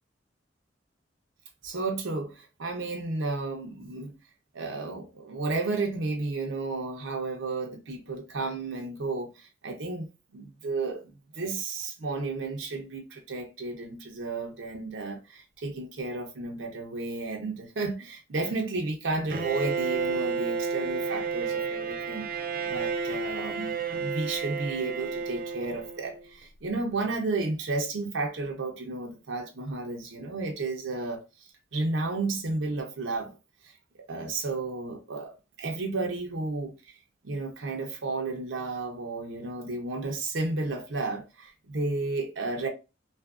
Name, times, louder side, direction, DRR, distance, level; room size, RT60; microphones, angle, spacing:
voice 1, 1.6-4.1 4.5-22.2 22.7-31.2 31.7-33.4 33.6-33.8 34.1-36.9 37.2-42.7, right 3 dB, 90° right, 0.6 m, -32 dB
Bowed string instrument, 19.3-26.2, right 5 dB, 50° right, 0.3 m, -31 dB
2.8 x 2.4 x 2.3 m
head